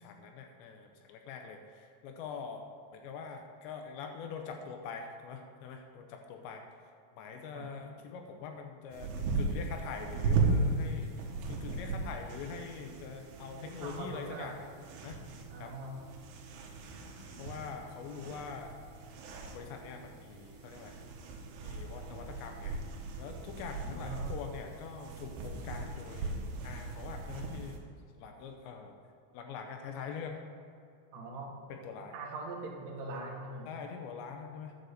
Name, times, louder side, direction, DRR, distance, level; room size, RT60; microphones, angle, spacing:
voice 1, 0.0-2.7 2.9-6.6 7.2-11.1 11.5-14.6 15.0-15.2 15.6-15.8 17.4-18.8 19.5-21.0 21.6-22.8 23.2-27.8 28.1-29.0 29.3-30.4 31.7-32.2 33.7-34.8, left 6 dB, 80° left, 4 dB, 2.7 m, -44 dB
sound 1, 8.9-27.8, right 3 dB, 75° right, 2.6 m, -37 dB
voice 2, 13.6-14.5 15.5-16.0 23.8-24.4 31.1-31.5 32.1-33.7, right 2 dB, 90° right, -1 dB, 1.5 m, -42 dB
10.5 x 5.3 x 6.7 m, 2.5 s
omnidirectional pair, 5.5 m